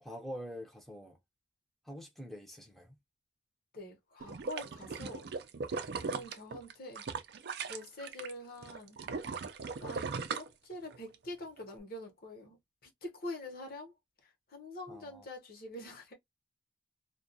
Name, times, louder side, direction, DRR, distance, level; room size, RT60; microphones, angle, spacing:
voice 1, 0.0-1.2 1.8-3.0 14.9-15.3, equal, ahead, 0.5 m, -45 dB
voice 2, 3.7-5.3 5.9-7.0 7.7-9.0 9.8-12.6 13.0-13.9 14.5-16.1, left 1 dB, 55° left, 0.8 m, -45 dB
sound 1, 4.2-8.3 8.6-11.1 11.6-11.7, right 4 dB, 60° right, 0.4 m, -38 dB
2.2 x 2.2 x 2.6 m
head